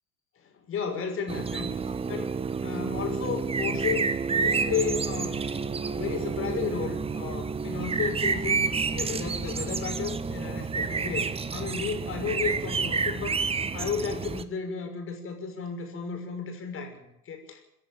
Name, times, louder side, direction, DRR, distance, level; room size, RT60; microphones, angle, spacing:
voice 1, 0.4-1.7 2.1-2.3 2.6-5.4 5.8-13.5 13.7-17.6, left 6 dB, 30° left, 4 dB, 6.1 m, -33 dB
sound 1, 1.3-14.4, right 5 dB, 15° right, 1.1 m, -29 dB
29.0 x 10.5 x 9.1 m, 0.82 s
hypercardioid pair, 90°, 43 cm